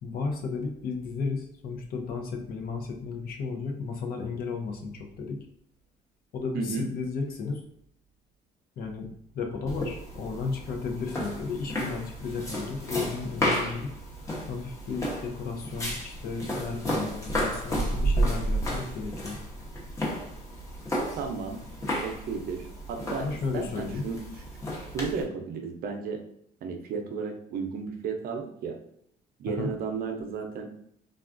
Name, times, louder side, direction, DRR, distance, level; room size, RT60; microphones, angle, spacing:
voice 1, 0.0-5.5 6.3-7.6 8.8-13.9 14.5-19.4 23.1-24.0 29.5-29.7, left 4 dB, 60° left, 3 dB, 0.7 m, -34 dB
voice 2, 6.5-6.9 21.2-21.6 22.0-23.3 23.5-24.2 24.9-26.2 26.6-28.8 29.4-30.7, right 5 dB, 60° right, 4 dB, 0.6 m, -33 dB
sound 1, 9.7-25.2, equal, 20° left, 0.9 m, -32 dB
3.5 x 2.3 x 2.5 m, 0.68 s
cardioid pair, 110°, 17 cm